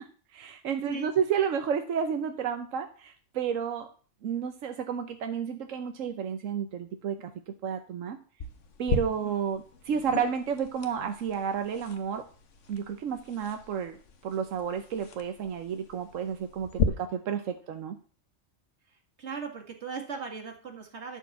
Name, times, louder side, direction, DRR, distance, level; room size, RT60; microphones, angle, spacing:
voice 1, 0.0-3.9 4.2-8.2 8.8-12.3 12.7-14.0 14.2-18.0, right 7 dB, 90° right, 7 dB, 1.2 m, -31 dB
sound 1, 8.4-16.8, left 5 dB, 70° left, 1.4 m, -37 dB
voice 2, 9.2-9.5 18.9-21.2, right 5 dB, 60° right, 2 dB, 2.2 m, -38 dB
11.5 x 4.6 x 7.1 m, 0.41 s
omnidirectional pair, 1.3 m